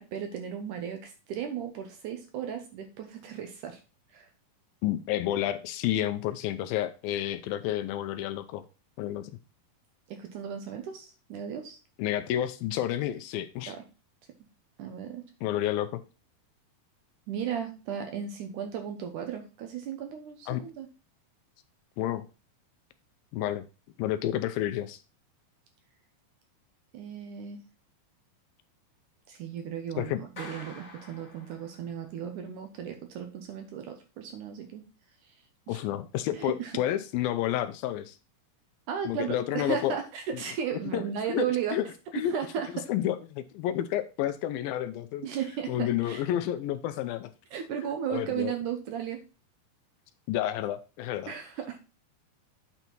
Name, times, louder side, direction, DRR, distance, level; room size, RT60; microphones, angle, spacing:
voice 1, 0.0-3.8 4.1-4.3 10.1-11.8 13.7-13.8 14.8-15.2 17.3-20.9 26.9-27.6 29.3-34.8 35.7-35.8 36.3-36.7 38.9-41.8 42.1-42.9 45.2-46.2 47.5-49.2 51.3-51.8, right 8 dB, 70° right, 5 dB, 2.0 m, -35 dB
voice 2, 4.8-8.6 9.0-9.4 12.0-13.7 15.4-16.0 20.5-20.6 22.0-22.2 23.3-23.6 24.0-25.0 30.0-30.2 35.7-38.2 39.1-40.0 40.9-41.0 41.3-41.9 42.1-42.3 42.9-45.3 45.7-47.3 48.1-48.5 50.3-51.3, left 12 dB, 80° left, 11 dB, 2.3 m, -30 dB
Clapping, 30.4-32.1, left 3 dB, 40° left, 1.2 m, -47 dB
9.0 x 4.2 x 4.5 m, 0.31 s
omnidirectional pair, 4.3 m